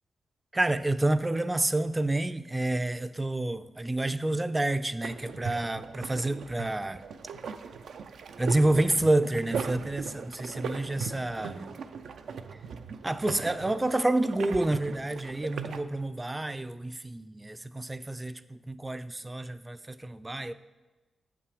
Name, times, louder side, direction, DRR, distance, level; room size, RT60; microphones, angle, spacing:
voice 1, 0.5-7.0 8.4-11.7 13.0-20.5, right 2 dB, 20° right, 0.4 m, -29 dB
sound 1, 5.0-15.8, right 6 dB, 80° right, 0.4 m, -39 dB
7.4 x 5.9 x 4.9 m
cardioid pair, 60°, 0 cm